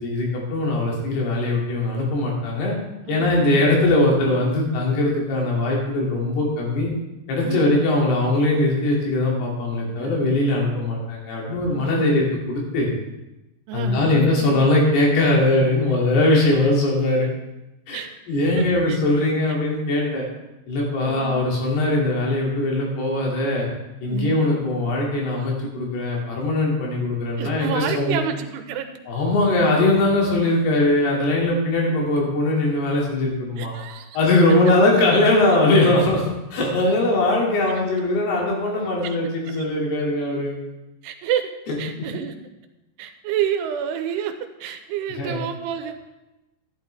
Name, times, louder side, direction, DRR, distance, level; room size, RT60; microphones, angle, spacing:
voice 1, 0.0-2.7 3.1-6.9 7.3-12.9 13.7-17.3 17.9-18.0 18.3-20.2 20.7-23.7 24.0-28.2 29.1-33.8 34.1-40.6 41.7-41.8 45.2-45.4, left 2 dB, 75° left, -2 dB, 4.5 m, -21 dB
voice 2, 3.1-3.4 7.4-7.6 9.8-10.2 11.7-12.1 13.7-14.6 17.9-18.1 18.6-19.0 21.0-21.3 24.1-24.4 27.4-29.0 33.6-34.2 39.0-39.2 39.5-39.6 41.0-41.5 41.8-42.4 43.0-46.0, right 8 dB, 85° right, 8 dB, 2.8 m, -29 dB
11.5 x 11.0 x 3.4 m, 0.97 s
omnidirectional pair, 4.7 m